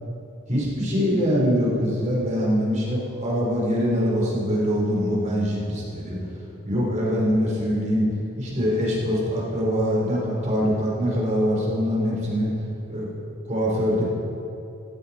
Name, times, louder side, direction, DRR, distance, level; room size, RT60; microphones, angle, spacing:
voice 1, 0.5-6.2 6.6-8.1 8.4-12.5 12.9-13.1 13.5-14.0, equal, 35° right, -4 dB, 4.1 m, -23 dB
15.5 x 15.0 x 4.4 m, 2.8 s
head